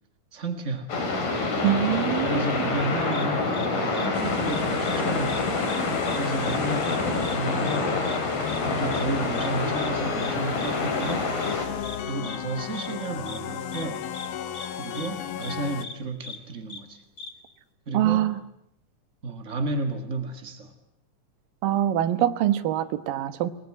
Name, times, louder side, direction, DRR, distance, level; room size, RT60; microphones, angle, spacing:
voice 1, 0.3-0.9 2.2-5.4 6.2-7.9 8.6-11.3 12.0-14.1 14.7-17.0 17.9-18.3 19.2-20.7, right 3 dB, 45° right, 7 dB, 0.9 m, -32 dB
sound 1, 0.9-11.7, left 3 dB, 60° left, 5.9 m, -27 dB
voice 2, 1.6-2.4 17.9-18.4 21.6-23.5, right 12 dB, 70° right, 11 dB, 2.9 m, -24 dB
sound 2, 3.1-3.2 3.5-3.7 3.9-4.1 4.4-5.0 5.2-5.4 5.6-6.2 6.4-6.6 6.8-7.0 7.2-7.3 7.6-7.8 8.0-8.2 8.5-8.6 8.9-9.0 9.3-9.5 9.8-9.9 10.2-10.3 10.6-10.7 11.0-11.1 11.4-11.5 11.8-12.0 12.2-12.4 12.7-12.9 13.3-13.4 13.7-13.8 14.1-14.3 14.5-14.7 14.9-15.1 15.4-15.5 15.8-15.9 16.2-16.4 16.7-16.8 17.2-17.3, left 3 dB, 30° left, 2.2 m, -40 dB
sound 3, 4.1-15.9, left 9 dB, 75° left, 3.1 m, -34 dB
29.0 x 20.5 x 9.8 m, 0.77 s
omnidirectional pair, 4.3 m